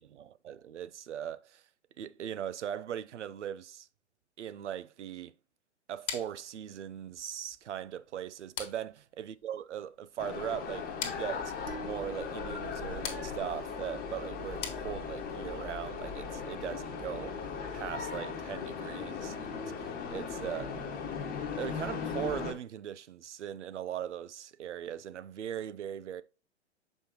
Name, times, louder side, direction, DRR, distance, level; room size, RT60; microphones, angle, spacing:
voice 1, 0.0-1.6 2.0-3.9 4.4-5.3 5.9-11.5 11.8-20.8 21.5-26.2, right 10 dB, 75° right, 0.5 m, -39 dB
sound 1, 6.1-15.4, left 8 dB, 40° left, 1.3 m, -45 dB
sound 2, 10.2-22.5, left 5 dB, 25° left, 1.1 m, -38 dB
sound 3, 11.7-14.1, right 4 dB, 25° right, 0.6 m, -49 dB
6.2 x 5.3 x 2.9 m
figure-of-eight pair, 105°, 35 cm